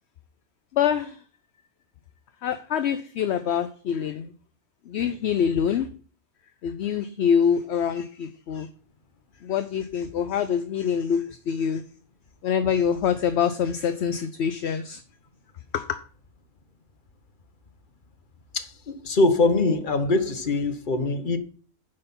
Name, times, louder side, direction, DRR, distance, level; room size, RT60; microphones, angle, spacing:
voice 1, 0.7-1.2 2.4-4.3 4.9-5.9 6.6-8.7 9.4-11.8 12.4-15.0 15.7-16.0, left 8 dB, 60° left, 0.8 m, -25 dB
voice 2, 18.5-21.4, left 2 dB, 35° left, 1.2 m, -23 dB
10.0 x 6.7 x 5.4 m
omnidirectional pair, 1.5 m